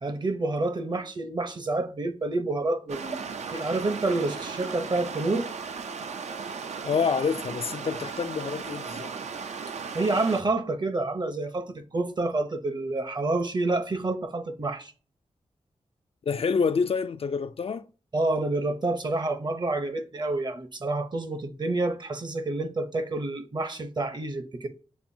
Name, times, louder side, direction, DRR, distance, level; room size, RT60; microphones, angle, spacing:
voice 1, 0.0-3.2 3.5-5.5 9.9-14.9 18.1-24.7, right 2 dB, 40° right, 0.7 m, -28 dB
sound 1, 2.9-10.4, right 5 dB, 75° right, 0.4 m, -36 dB
voice 2, 6.8-9.1 16.3-17.9, left 5 dB, 55° left, 0.4 m, -27 dB
6.8 x 2.5 x 2.6 m
wide cardioid pair, 70°, 12 cm